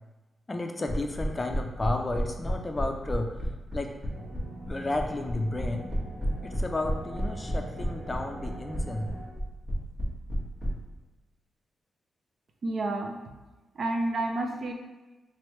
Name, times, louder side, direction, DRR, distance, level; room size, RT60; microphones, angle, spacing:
voice 1, 0.5-3.4 3.7-3.9 4.2-4.3 4.7-5.9 6.4-9.1, left 2 dB, 25° left, 4 dB, 0.4 m, -32 dB
sound 1, 0.9-10.7, equal, 25° right, 1.4 m, -31 dB
sound 2, 4.0-9.3, right 1 dB, 75° right, 1.4 m, -42 dB
voice 2, 12.6-13.2 13.8-14.7, right 2 dB, 55° right, 3 dB, 0.5 m, -29 dB
3.5 x 3.3 x 3.1 m, 1.1 s
cardioid pair, 100°, 0 cm